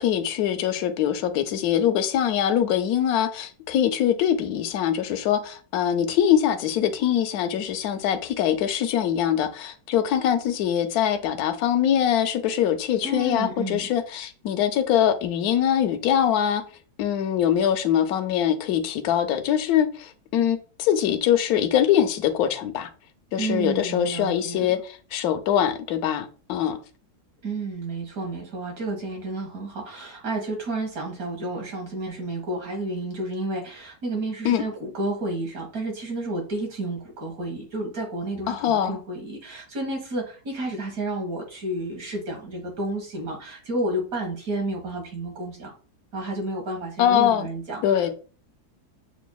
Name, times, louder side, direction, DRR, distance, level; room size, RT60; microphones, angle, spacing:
voice 1, 0.0-16.6 17.0-22.9 23.3-26.8 34.4-34.6 38.5-39.0 47.0-47.5 47.8-48.1, left 10 dB, 75° left, 1.0 m, -23 dB
voice 2, 13.0-13.9 23.4-24.7 27.4-45.7 46.1-48.1, right 2 dB, 60° right, 1.8 m, -31 dB
6.8 x 2.5 x 2.2 m
omnidirectional pair, 1.7 m